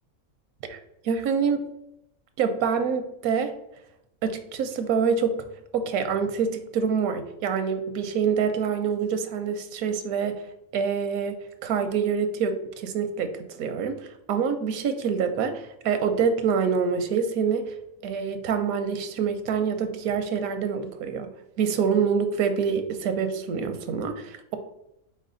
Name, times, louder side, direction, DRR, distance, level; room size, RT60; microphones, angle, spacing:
voice 1, 1.0-1.6 2.4-3.5 4.2-5.4 5.7-10.4 10.7-17.7 18.0-21.3 21.6-24.6, right 6 dB, 85° right, 8 dB, 1.0 m, -26 dB
4.1 x 3.3 x 3.7 m, 0.82 s
omnidirectional pair, 1.5 m